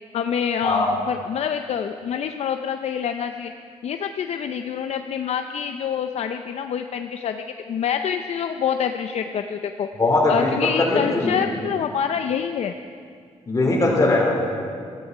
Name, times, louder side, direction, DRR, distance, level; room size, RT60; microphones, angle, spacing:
voice 1, 0.1-3.5 3.8-9.9 10.3-12.7, left 8 dB, 60° left, 7 dB, 0.5 m, -26 dB
voice 2, 10.0-11.4 13.5-14.3, left 2 dB, 25° left, -2 dB, 3.9 m, -20 dB
15.5 x 14.0 x 4.8 m, 2.2 s
cardioid pair, 105°, 12 cm